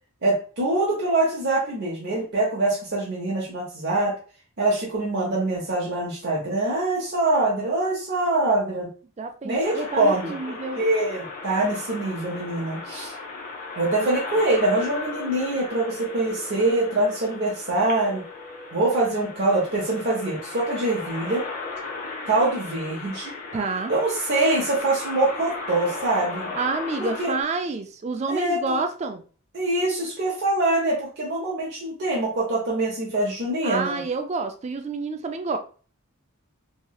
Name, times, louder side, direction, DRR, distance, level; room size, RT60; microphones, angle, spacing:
voice 1, 0.2-4.2 4.6-8.9 9.4-10.4 10.7-13.1 13.8-18.2 18.7-21.5 22.3-23.4 23.9-26.5 27.0-27.3 28.3-28.8 29.5-34.0, right 2 dB, 50° right, -3 dB, 0.7 m, -24 dB
voice 2, 9.2-10.8 14.0-14.1 23.5-23.9 26.6-29.2 33.6-35.6, right 3 dB, 30° right, 6 dB, 0.3 m, -28 dB
sound 1, 9.6-27.4, left 3 dB, 40° left, 0.6 m, -36 dB
3.0 x 2.8 x 2.3 m, 0.39 s
head